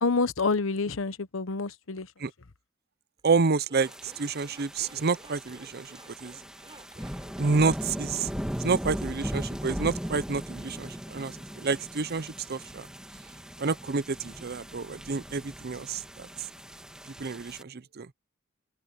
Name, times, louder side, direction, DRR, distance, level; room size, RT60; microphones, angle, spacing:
voice 1, 0.0-2.1, left 4 dB, 80° left, 1.0 m, -27 dB
Zipper (clothing), 3.2-7.4, right 2 dB, 25° right, 5.0 m, -53 dB
voice 2, 3.2-6.3 7.4-8.3 8.6-12.9 13.6-16.3 17.2-18.1, right 4 dB, 50° right, 0.7 m, -29 dB
sound 1, 3.8-17.6, equal, 5° right, 2.1 m, -38 dB
open air
head